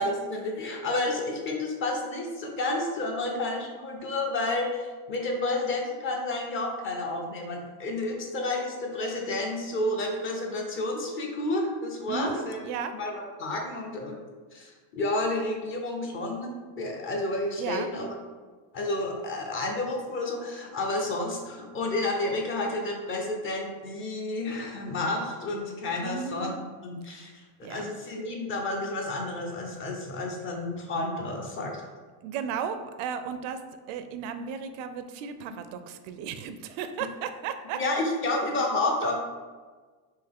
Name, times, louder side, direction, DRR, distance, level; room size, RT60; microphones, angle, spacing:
voice 1, 0.0-12.6 12.9-14.2 14.5-18.1 18.7-27.4 27.7-31.7 37.7-39.2, left 2 dB, 30° left, 1 dB, 0.6 m, -30 dB
voice 2, 12.1-12.9 17.6-17.9 26.0-26.7 27.6-27.8 32.2-33.6 33.9-37.8, right 7 dB, 75° right, 9 dB, 0.5 m, -34 dB
4.5 x 2.8 x 3.5 m, 1.4 s
cardioid pair, 155°, 44 cm